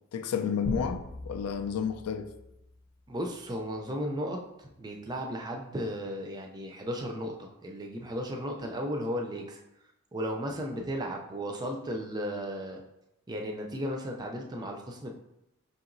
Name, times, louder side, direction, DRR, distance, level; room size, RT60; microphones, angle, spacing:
voice 1, 0.1-2.3, left 7 dB, 90° left, 0.4 m, -31 dB
sound 1, 0.6-3.5, equal, 40° left, 0.7 m, -41 dB
voice 2, 3.1-9.6 10.1-12.8 13.3-15.2, equal, 20° right, 0.3 m, -35 dB
5.1 x 2.9 x 2.5 m
head